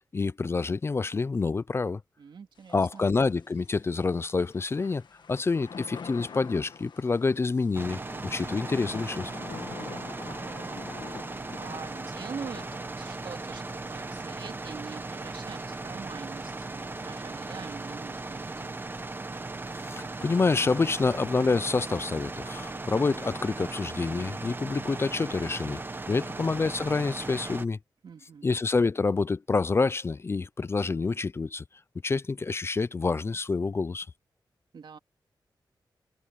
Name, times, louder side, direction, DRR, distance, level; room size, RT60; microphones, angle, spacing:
voice 1, 0.1-2.0 2.7-5.0 5.3-9.3 19.9-25.8 26.1-27.8 28.4-31.6 32.0-34.1, left 4 dB, 30° left, 0.4 m, -27 dB
voice 2, 2.2-3.1 9.7-10.9 11.6-18.8 26.1-26.4 28.0-28.5 34.7-35.0, right 6 dB, 75° right, 2.4 m, -44 dB
Thunder / Rain, 2.6-20.8, left 6 dB, 70° left, 1.5 m, -48 dB
sound 1, 7.7-27.7, right 3 dB, 25° right, 1.0 m, -37 dB
wide cardioid pair, 120°, 8 cm